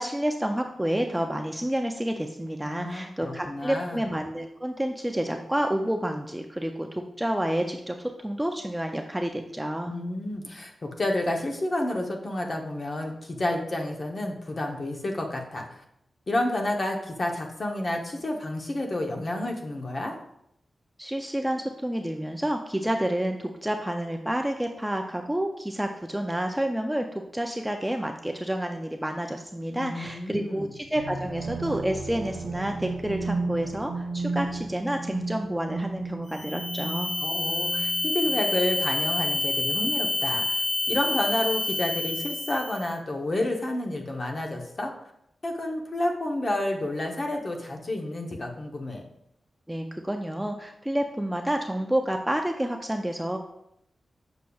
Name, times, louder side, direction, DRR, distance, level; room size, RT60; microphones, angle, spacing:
voice 1, 0.0-9.9 21.0-37.1 49.7-53.4, right 1 dB, 5° right, 3 dB, 0.3 m, -29 dB
voice 2, 2.7-4.0 9.9-15.8 16.3-20.1 29.7-30.7 37.2-44.9 45.4-49.0, left 1 dB, 35° left, 2 dB, 0.8 m, -30 dB
sound 1, 31.0-38.6, right 3 dB, 80° right, 0.7 m, -34 dB
sound 2, 36.3-42.9, left 2 dB, 80° left, 0.6 m, -28 dB
6.9 x 6.2 x 2.3 m, 0.78 s
wide cardioid pair, 175°, 0 cm